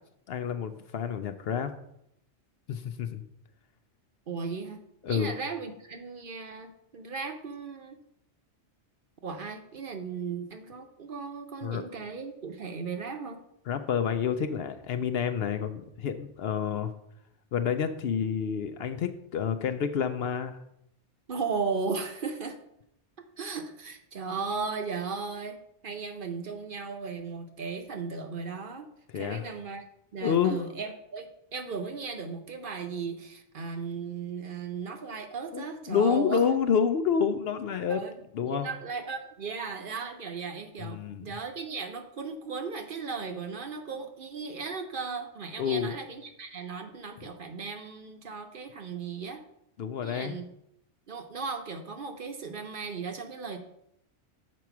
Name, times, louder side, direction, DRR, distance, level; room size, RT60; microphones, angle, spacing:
voice 1, 0.3-1.7 2.7-3.2 5.0-5.3 11.6-11.8 13.7-16.9 17.5-20.6 29.1-29.5 30.2-30.6 35.5-38.0 38.3-38.7 40.8-41.3 45.6-45.9 49.8-50.4, left 7 dB, 65° left, 9 dB, 0.7 m, -28 dB
voice 2, 4.3-4.8 5.1-8.0 9.2-13.4 21.3-22.6 23.4-25.6 25.8-28.9 29.1-29.8 30.1-36.4 37.9-38.1 38.4-49.4 50.0-50.5 51.1-53.6, right 5 dB, 50° right, 5 dB, 0.8 m, -36 dB
7.0 x 4.6 x 5.9 m, 0.78 s
omnidirectional pair, 1.2 m